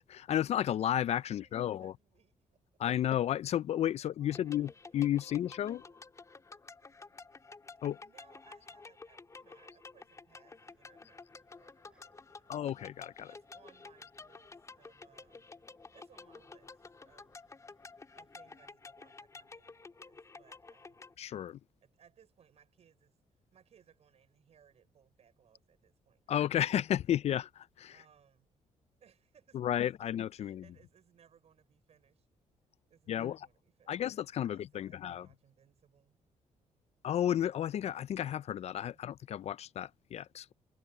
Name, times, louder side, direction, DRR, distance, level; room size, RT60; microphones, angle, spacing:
voice 1, 0.0-1.9 2.8-5.8 7.8-8.0 12.5-13.3 21.2-21.6 26.3-27.9 29.5-30.6 33.1-33.4 33.9-35.3 37.0-40.5, left 11 dB, 55° left, 0.4 m, -32 dB
voice 2, 1.3-2.6 4.0-6.0 8.0-12.7 13.3-15.6 15.9-17.5 18.1-21.3 21.8-23.2 23.5-27.0 27.9-28.5 29.0-29.6 30.0-30.1 30.4-32.3 32.9-34.1 34.4-36.2 38.9-39.0, right 8 dB, 55° right, 5.7 m, -66 dB
sound 1, 4.3-21.1, left 4 dB, 25° left, 2.8 m, -52 dB
sound 2, 10.6-18.7, right 1 dB, 5° right, 7.1 m, -74 dB
cardioid pair, 145°, 13 cm